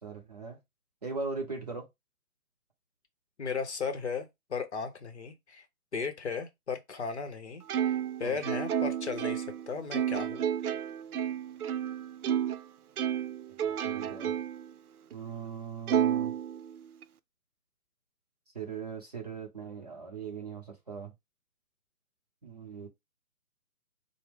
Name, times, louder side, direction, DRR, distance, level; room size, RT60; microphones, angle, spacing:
voice 1, 0.0-0.6 1.0-1.9 8.2-8.4 13.6-14.3 15.1-16.3 18.5-21.1 22.4-22.9, right 5 dB, 25° right, 0.7 m, -39 dB
voice 2, 3.4-5.6 5.9-10.5, left 5 dB, 45° left, 0.7 m, -36 dB
Plucked string instrument, 7.7-12.6 13.0-14.7 15.1-15.2 15.9-17.0, right 9 dB, 75° right, 0.5 m, -31 dB
4.5 x 2.1 x 3.5 m
figure-of-eight pair, 150°, 45 cm